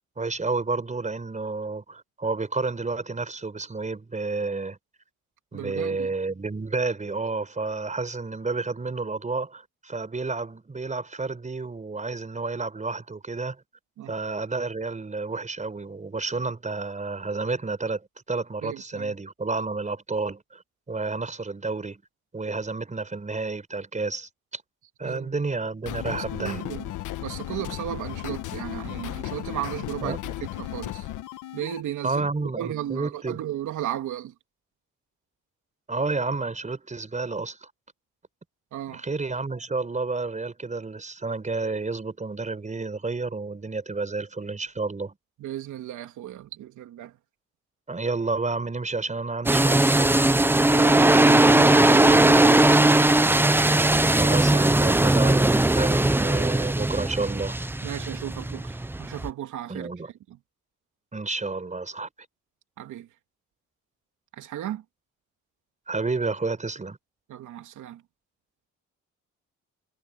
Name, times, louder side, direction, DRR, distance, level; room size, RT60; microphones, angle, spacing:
voice 1, 0.2-4.8 5.5-13.6 14.1-20.6 20.9-22.0 22.3-24.6 25.0-26.6 30.0-30.2 32.0-33.4 35.9-37.7 38.9-45.1 47.9-50.3 54.2-57.6 59.7-60.1 61.1-62.1 65.9-67.0, right 3 dB, 25° right, 4.9 m, -30 dB
voice 2, 5.5-6.1 14.0-14.1 18.6-19.1 25.0-25.4 26.1-26.9 27.2-30.2 30.5-31.1 31.5-32.3 32.6-34.3 38.7-39.0 45.4-47.1 50.7-53.0 57.8-59.9 60.3-60.4 62.8-63.1 64.3-64.8 67.3-68.0, right 12 dB, 80° right, 3.1 m, -35 dB
sound 1, 25.8-31.8, left 14 dB, 85° left, 1.3 m, -35 dB
sound 2, 49.5-59.3, right 1 dB, 5° right, 0.7 m, -19 dB
cardioid pair, 90°, 30 cm